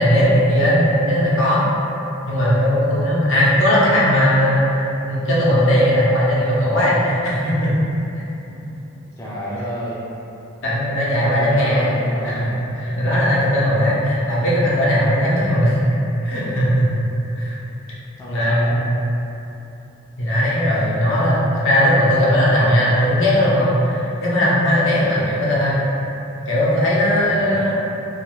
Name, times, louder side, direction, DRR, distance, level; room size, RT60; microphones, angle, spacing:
voice 1, 0.0-1.6 2.3-7.7 10.6-11.9 12.2-12.5 12.8-15.9 16.2-17.0 17.4-17.6 18.3-18.9 20.2-25.8 26.5-27.8, equal, 65° left, -7 dB, 0.7 m, -18 dB
voice 2, 9.2-10.1 11.1-12.5 15.3-15.5 18.2-18.8 25.0-25.3 27.2-27.7, equal, 15° left, -9 dB, 0.3 m, -30 dB
2.4 x 2.3 x 3.0 m, 2.9 s
head